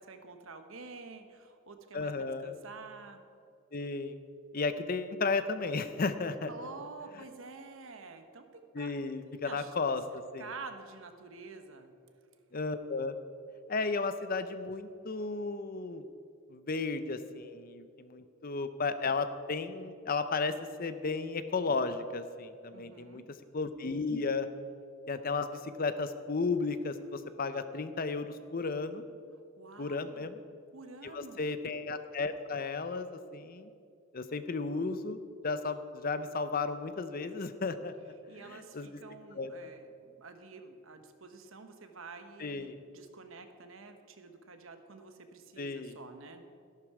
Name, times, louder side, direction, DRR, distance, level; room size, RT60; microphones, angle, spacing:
voice 1, 0.0-3.2 6.5-9.1 9.4-9.7 10.1-11.9 22.7-23.2 29.6-30.3 30.7-31.5 38.3-46.4, right 4 dB, 65° right, 7 dB, 1.1 m, -49 dB
voice 2, 1.9-2.5 3.7-4.2 4.5-6.5 8.7-10.5 12.5-13.2 13.7-16.0 16.5-24.5 25.1-29.0 29.8-30.4 31.0-33.7 34.1-37.9 38.4-39.0 39.4-39.5 42.4-42.8 45.6-46.0, left 4 dB, 40° left, 11 dB, 0.6 m, -34 dB
13.5 x 11.5 x 4.8 m, 2.4 s
head